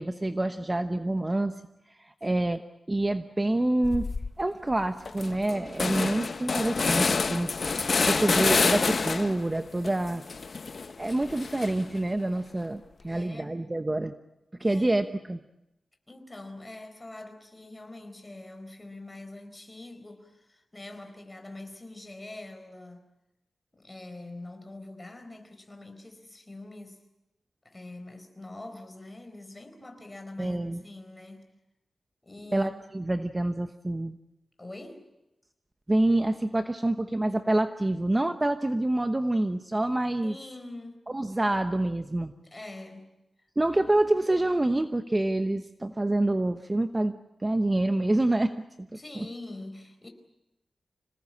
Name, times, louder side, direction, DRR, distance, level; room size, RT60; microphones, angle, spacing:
voice 1, 0.0-1.6 2.0-2.6 2.9-4.1 4.4-7.5 8.0-10.2 11.0-14.1 14.6-15.4 30.4-30.8 32.5-34.2 35.9-40.3 41.1-42.3 43.6-48.6 49.2-49.3, right 1 dB, 20° right, 8 dB, 1.0 m, -27 dB
sound 1, 3.8-4.3 4.7-4.8 5.1-9.5 9.8-12.0, left 4 dB, 50° left, 1.0 m, -28 dB
voice 2, 13.1-13.6 14.6-15.0 16.1-23.1 23.7-27.0 27.6-31.5 32.2-32.7 34.6-35.0 40.2-41.1 42.4-43.1 48.9-50.1, left 2 dB, 20° left, 6 dB, 4.3 m, -44 dB
26.5 x 19.0 x 8.8 m, 0.91 s
wide cardioid pair, 115°, 0 cm